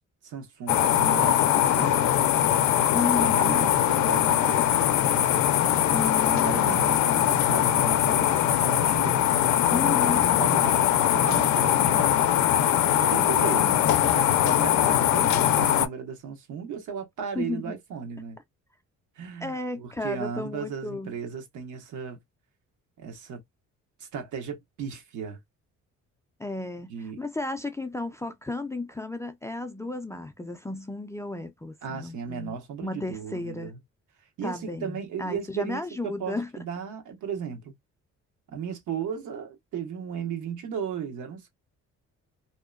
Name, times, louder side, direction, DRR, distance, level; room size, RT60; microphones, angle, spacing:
voice 1, 0.2-2.4 3.2-4.9 6.2-9.3 9.8-12.2 12.9-18.4 19.2-22.2 23.0-23.4 24.0-25.4 26.9-27.2 31.8-33.8 34.4-37.7 38.5-41.5, right 7 dB, 75° right, 1.0 m, -36 dB
sound 1, 0.7-15.9, left 11 dB, 70° left, 0.5 m, -22 dB
voice 2, 2.9-3.6 5.9-6.9 9.7-10.3 13.1-13.8 17.4-17.8 19.4-21.1 26.4-33.7 34.4-36.5, left 2 dB, 10° left, 0.3 m, -33 dB
2.7 x 2.1 x 2.3 m
cardioid pair, 90°, 30 cm